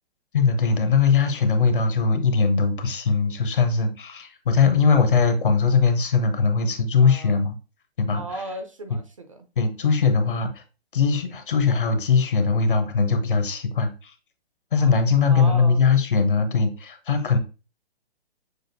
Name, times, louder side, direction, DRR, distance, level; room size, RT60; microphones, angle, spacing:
voice 1, 0.3-7.5 8.0-8.2 9.6-10.6 10.9-14.1 14.7-17.4, left 5 dB, 50° left, 0.9 m, -20 dB
voice 2, 7.0-7.4 8.1-9.5 15.3-15.8, right 2 dB, 30° right, 0.4 m, -35 dB
6.3 x 2.5 x 2.6 m
figure-of-eight pair, 135°, 32 cm